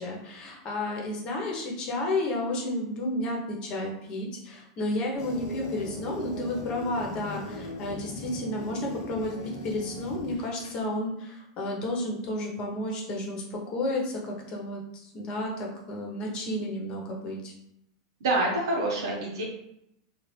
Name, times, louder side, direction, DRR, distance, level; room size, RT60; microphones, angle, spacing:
voice 1, 0.0-9.3 9.6-17.5, left 1 dB, 40° left, -1 dB, 1.0 m, -32 dB
sound 1, 5.2-10.7, left 2 dB, 70° left, 0.6 m, -40 dB
voice 2, 18.2-19.4, right 2 dB, 80° right, -2 dB, 0.8 m, -26 dB
2.8 x 2.5 x 3.2 m, 0.77 s
hypercardioid pair, 110°, 2 cm